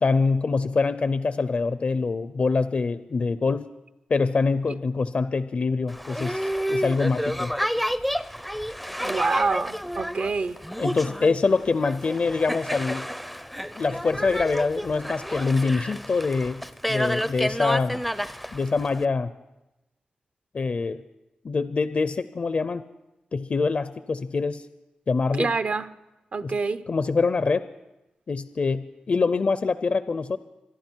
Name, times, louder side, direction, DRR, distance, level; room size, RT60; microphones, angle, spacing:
voice 1, 0.0-3.7 4.1-7.5 10.8-13.1 13.8-16.6 16.9-18.0 18.5-19.3 20.5-21.0 21.4-22.8 23.3-24.6 25.1-25.5 26.4-26.5 26.9-27.7 28.3-30.4, left 4 dB, 50° left, 0.5 m, -24 dB
Boat Water vehicle, 5.9-19.0, equal, ahead, 0.5 m, -30 dB
voice 2, 9.0-10.6 25.4-26.0 26.3-26.9, right 4 dB, 55° right, 0.6 m, -26 dB
26.0 x 11.0 x 4.5 m
wide cardioid pair, 85°, 3 cm